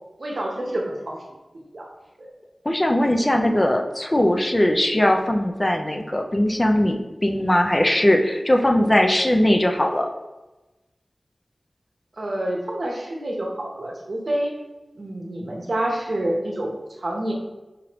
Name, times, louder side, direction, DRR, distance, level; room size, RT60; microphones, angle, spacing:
voice 1, 0.2-1.2 1.7-1.9 2.2-2.3 12.2-14.5 15.0-16.7 17.0-17.3, right 1 dB, 60° right, -1 dB, 0.8 m, -27 dB
voice 2, 2.6-10.1, left 1 dB, 25° left, 3 dB, 0.4 m, -20 dB
5.0 x 3.1 x 3.0 m, 1.1 s
wide cardioid pair, 75°, 0 cm